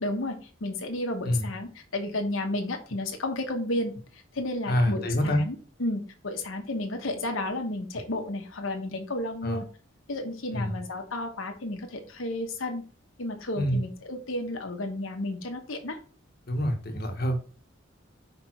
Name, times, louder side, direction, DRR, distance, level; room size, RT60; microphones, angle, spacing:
voice 1, 0.0-9.7 10.1-12.8 13.2-16.0, left 1 dB, 80° left, 1.2 m, -32 dB
voice 2, 4.7-5.4 9.4-9.6 10.5-10.7 13.6-13.8 16.5-17.4, equal, 50° left, 1.2 m, -26 dB
5.1 x 4.5 x 4.5 m
head